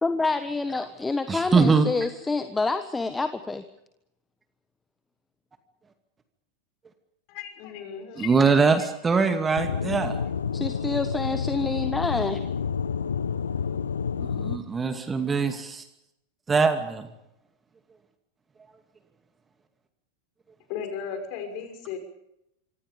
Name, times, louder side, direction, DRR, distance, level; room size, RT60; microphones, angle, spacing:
voice 1, 0.0-3.6 10.5-12.4, left 3 dB, 10° left, 10 dB, 1.3 m, -27 dB
voice 2, 1.3-1.9 8.2-10.2 14.2-15.8 16.5-17.1, right 4 dB, 15° right, 7 dB, 2.3 m, -22 dB
voice 3, 7.3-8.3 20.7-22.0, left 7 dB, 45° left, 6 dB, 6.0 m, -35 dB
Aircraft / Engine, 9.6-14.6, left 6 dB, 70° left, 1.1 m, -29 dB
26.0 x 25.5 x 5.4 m, 0.83 s
figure-of-eight pair, 90°, 0 cm